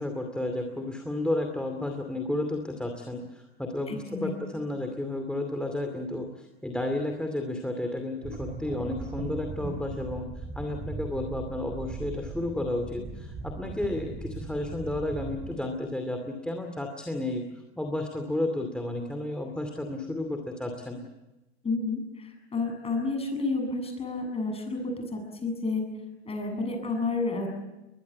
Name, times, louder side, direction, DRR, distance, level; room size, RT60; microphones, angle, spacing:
voice 1, 0.0-17.4 17.8-21.0, left 1 dB, 5° left, 3 dB, 2.6 m, -32 dB
voice 2, 3.9-4.6 21.6-25.8 26.2-27.5, left 3 dB, 20° left, 4 dB, 7.5 m, -31 dB
sound 1, 8.2-15.6, right 3 dB, 20° right, 4.0 m, -39 dB
22.0 x 21.5 x 8.5 m, 1.0 s
supercardioid pair, 125°, 32 cm